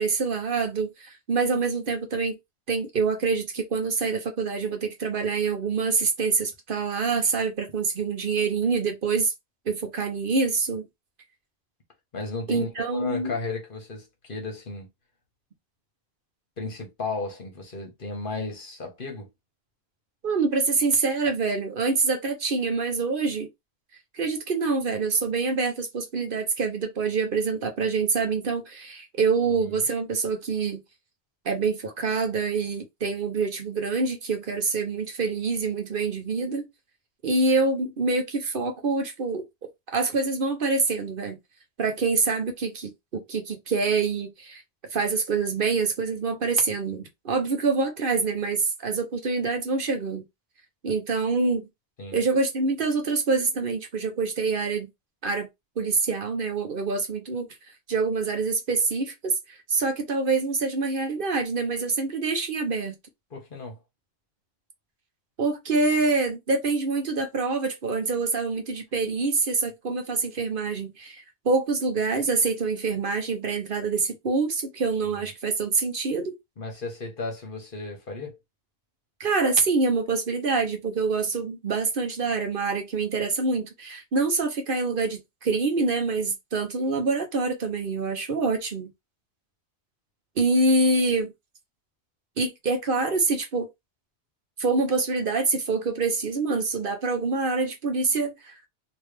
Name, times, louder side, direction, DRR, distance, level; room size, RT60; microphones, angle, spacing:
voice 1, 0.0-2.3 2.7-9.3 9.7-10.8 12.5-13.3 20.2-23.5 24.1-30.8 31.4-36.6 37.2-39.4 39.9-41.4 41.8-44.6 44.9-50.2 50.8-51.7 52.1-54.9 55.2-55.5 55.8-57.5 57.9-63.0 65.4-76.3 79.2-88.9 90.4-91.3 92.4-93.7 94.6-98.5, right 4 dB, 55° right, 1.0 m, -26 dB
voice 2, 12.1-14.9 16.6-19.3 29.6-29.8 52.0-52.2 63.3-63.8 75.1-75.3 76.6-78.4, left 3 dB, 55° left, 1.4 m, -34 dB
3.2 x 2.8 x 3.3 m
omnidirectional pair, 1.1 m